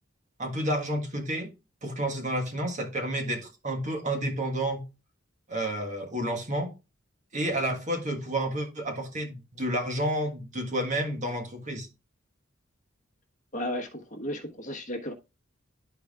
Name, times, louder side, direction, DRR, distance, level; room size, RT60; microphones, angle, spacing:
voice 1, 0.4-1.5 1.8-4.8 5.5-6.7 7.3-11.9, right 1 dB, 40° right, 1.6 m, -30 dB
voice 2, 13.5-15.1, left 1 dB, 40° left, 1.4 m, -34 dB
12.5 x 4.6 x 2.4 m
head